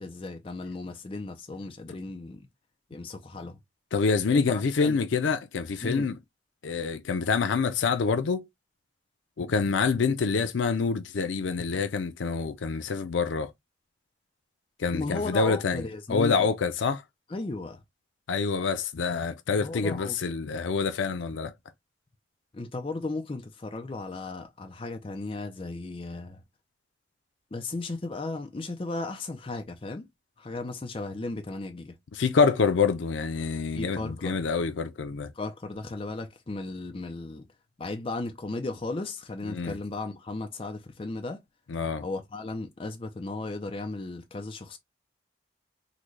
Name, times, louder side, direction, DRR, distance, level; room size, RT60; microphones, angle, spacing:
voice 1, 0.0-2.5 2.9-3.6 4.3-5.0 5.8-6.1 14.9-16.5 17.3-17.8 19.6-20.3 22.5-26.4 27.5-30.1 30.4-32.0 33.7-34.4 35.3-37.5 37.8-41.4 42.0-44.8, left 3 dB, 30° left, 0.4 m, -35 dB
voice 2, 3.9-6.2 6.6-8.4 9.4-13.5 14.8-15.8 16.1-17.0 18.3-21.5 32.1-35.3 39.5-39.8 41.7-42.0, left 5 dB, 85° left, 0.5 m, -26 dB
3.8 x 2.2 x 3.1 m
head